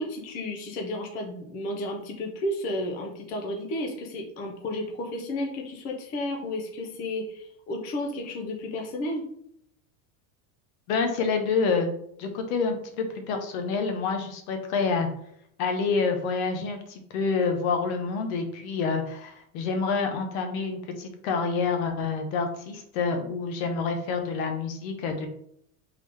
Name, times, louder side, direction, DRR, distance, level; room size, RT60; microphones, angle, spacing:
voice 1, 0.0-9.2, left 1 dB, 20° left, 1 dB, 0.3 m, -32 dB
voice 2, 10.9-11.9 12.2-15.1 15.6-25.3, left 4 dB, 65° left, 5 dB, 1.0 m, -27 dB
3.8 x 3.4 x 3.2 m, 0.71 s
supercardioid pair, 155°, 45 cm